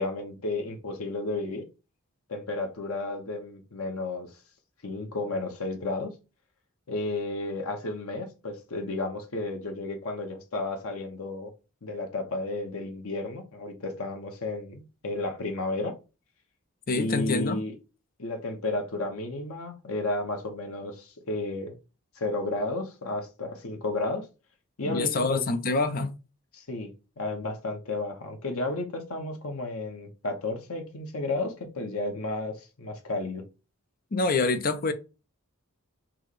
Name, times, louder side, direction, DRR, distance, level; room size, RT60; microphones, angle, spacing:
voice 1, 0.0-1.6 2.3-4.3 4.8-6.1 6.9-11.5 11.8-16.0 16.9-17.7 18.2-21.7 22.2-24.3 24.8-25.5 26.5-26.9 27.2-33.4, left 2 dB, 80° left, 0.9 m, -32 dB
voice 2, 16.9-17.6 24.8-26.1 34.1-34.9, left 3 dB, 40° left, 0.6 m, -26 dB
6.1 x 2.2 x 3.2 m
head